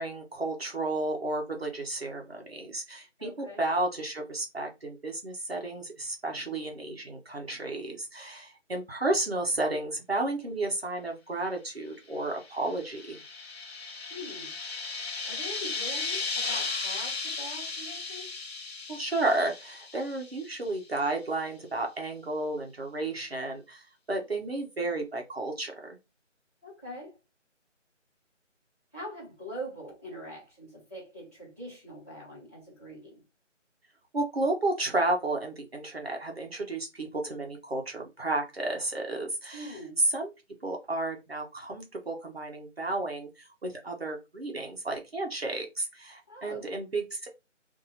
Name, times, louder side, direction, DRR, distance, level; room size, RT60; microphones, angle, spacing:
voice 1, 0.0-13.2 18.9-26.0 34.1-40.3 40.6-47.3, right 2 dB, 55° right, 1.0 m, -32 dB
voice 2, 3.2-3.6 14.1-14.5 15.3-18.3 26.6-27.2 28.9-33.2 39.5-39.9 46.3-46.7, equal, 15° left, 1.5 m, -43 dB
sound 1, 12.4-20.7, left 3 dB, 55° left, 0.7 m, -36 dB
2.7 x 2.7 x 4.1 m
figure-of-eight pair, 175°, 37 cm